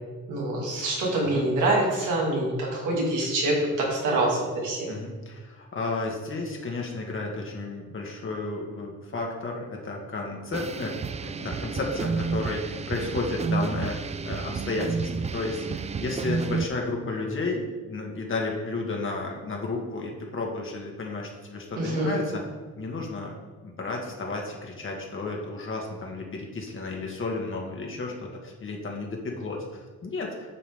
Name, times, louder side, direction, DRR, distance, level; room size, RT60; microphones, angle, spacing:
voice 1, 0.3-3.6 3.9-4.9 21.8-22.2, right 2 dB, 85° right, -3 dB, 2.5 m, -25 dB
voice 2, 4.9-11.0 11.2-14.0 14.3-22.4 22.8-23.3 23.6-30.6, left 3 dB, 40° left, 0 dB, 1.8 m, -32 dB
sound 1, 10.5-16.7, right 5 dB, 25° right, 0.3 m, -30 dB
8.6 x 6.1 x 3.6 m, 1.3 s
cardioid pair, 90°, 30 cm